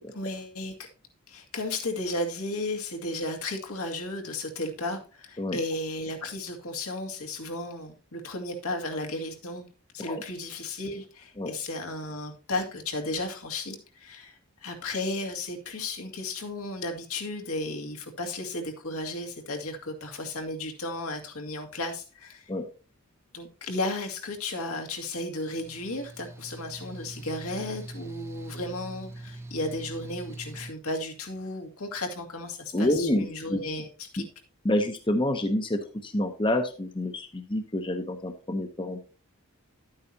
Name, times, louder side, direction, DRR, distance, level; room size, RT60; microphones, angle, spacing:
voice 1, 0.1-0.9 1.3-9.7 9.9-22.5 23.3-34.2, left 2 dB, 80° left, 2.0 m, -34 dB
Mechanical fan, 25.3-30.7, right 2 dB, 10° right, 0.6 m, -43 dB
voice 2, 32.7-33.6 34.2-34.3 34.6-39.0, left 1 dB, 20° left, 0.8 m, -28 dB
11.0 x 8.8 x 2.8 m
head